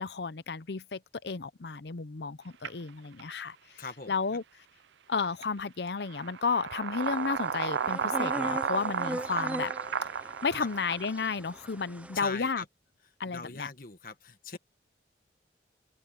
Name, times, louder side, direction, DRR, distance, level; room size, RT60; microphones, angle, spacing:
voice 1, 0.0-4.4 5.1-9.7 10.4-12.6 13.2-13.7, left 5 dB, 65° left, 0.7 m, -33 dB
sound 1, 2.6-2.7 3.2-3.3 5.4-5.5 6.1-11.1, right 6 dB, 80° right, 0.5 m, -33 dB
voice 2, 3.8-4.1 10.5-10.7 12.1-12.7 13.0-14.6, left 4 dB, 50° left, 1.6 m, -41 dB
sound 2, 7.0-12.2, right 1 dB, 10° right, 0.6 m, -40 dB
open air
head